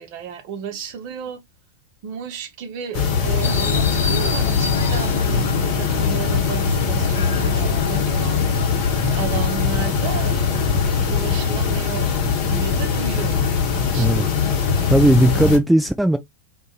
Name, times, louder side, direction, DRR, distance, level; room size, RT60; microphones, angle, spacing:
voice 1, 0.0-1.4 2.0-8.8 9.2-14.9, right 7 dB, 45° right, 0.8 m, -33 dB
sound 1, 2.9-15.6, left 6 dB, 40° left, 0.9 m, -21 dB
sound 2, 3.4-13.3, left 2 dB, 65° left, 0.5 m, -30 dB
voice 2, 13.9-14.3 14.6-16.2, right 1 dB, 5° right, 0.3 m, -17 dB
2.4 x 2.3 x 3.9 m
figure-of-eight pair, 90°, 0 cm